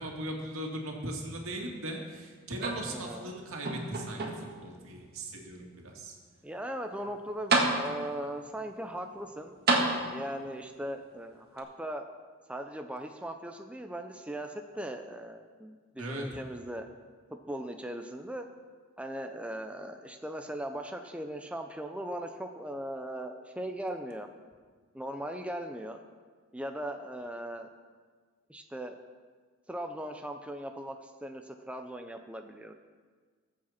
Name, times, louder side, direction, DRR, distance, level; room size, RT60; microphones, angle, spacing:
voice 1, 0.0-6.1 16.0-16.4, right 1 dB, 80° right, 0 dB, 2.2 m, -39 dB
sound 1, 2.6-3.3 3.7-4.7 5.4-5.5 7.0-7.1 7.5-8.3 9.7-10.5 11.6-11.7, right 2 dB, 50° right, 1.7 m, -29 dB
voice 2, 2.9-3.3 6.4-12.0 12.5-16.9 17.3-18.5 19.0-24.3 24.9-26.0 26.5-27.7 28.5-29.0 29.7-32.7, right 1 dB, 5° right, 5 dB, 0.6 m, -39 dB
20.5 x 7.6 x 4.3 m, 1.5 s
head